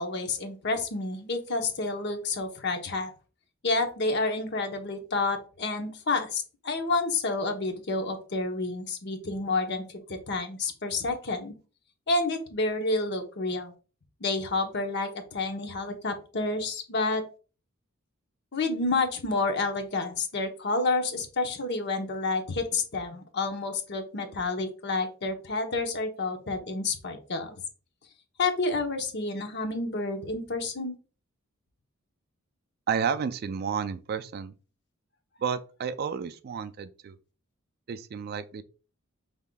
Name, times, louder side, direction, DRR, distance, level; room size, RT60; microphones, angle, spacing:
voice 1, 0.0-3.1 3.6-11.5 12.1-13.7 14.2-17.2 18.5-27.6 28.4-30.9, left 3 dB, 55° left, 0.9 m, -29 dB
voice 2, 32.9-34.5 35.4-37.2 37.9-38.6, right 6 dB, 45° right, 0.3 m, -31 dB
5.5 x 3.5 x 2.2 m
head